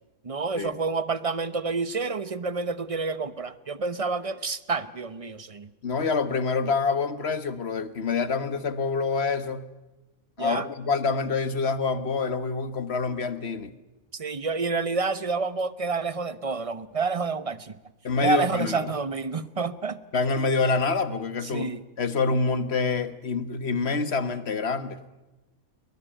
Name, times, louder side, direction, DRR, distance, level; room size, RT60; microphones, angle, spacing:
voice 1, 0.2-5.7 10.4-10.7 14.1-17.7 18.2-20.0 21.5-21.8, right 4 dB, 30° right, 16 dB, 0.8 m, -28 dB
voice 2, 5.8-9.7 10.4-13.7 18.0-18.9 20.1-21.7 22.0-25.0, left 4 dB, 50° left, 13 dB, 1.6 m, -26 dB
21.5 x 20.5 x 9.0 m, 1.0 s
omnidirectional pair, 1.5 m